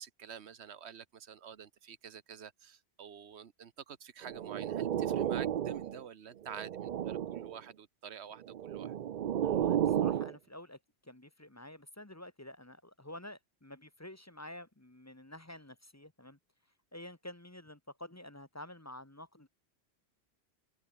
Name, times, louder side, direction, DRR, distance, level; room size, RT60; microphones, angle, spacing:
voice 1, 0.0-8.9, right 8 dB, 75° right, 1.3 m, -48 dB
sound 1, 4.2-6.0 6.4-7.6 8.5-10.3, right 10 dB, 55° right, 0.6 m, -33 dB
voice 2, 9.4-16.4 16.9-19.5, left 1 dB, 15° left, 1.2 m, -49 dB
omnidirectional pair, 1.1 m